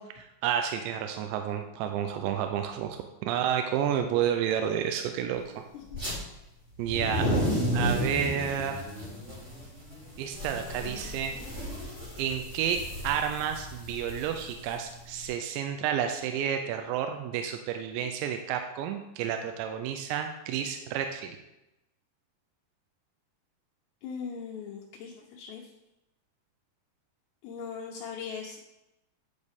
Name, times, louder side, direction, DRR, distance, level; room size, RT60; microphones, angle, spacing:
voice 1, 0.0-5.4 6.8-7.2 7.7-8.8 10.2-11.3 12.2-21.4, right 9 dB, 90° right, 6 dB, 2.9 m, -30 dB
sound 1, 5.9-6.1 6.7-15.2, equal, 20° right, 2.4 m, -33 dB
voice 2, 24.0-25.7 27.4-28.6, left 6 dB, 80° left, -3 dB, 2.9 m, -39 dB
10.0 x 6.3 x 3.6 m, 0.93 s
omnidirectional pair, 5.1 m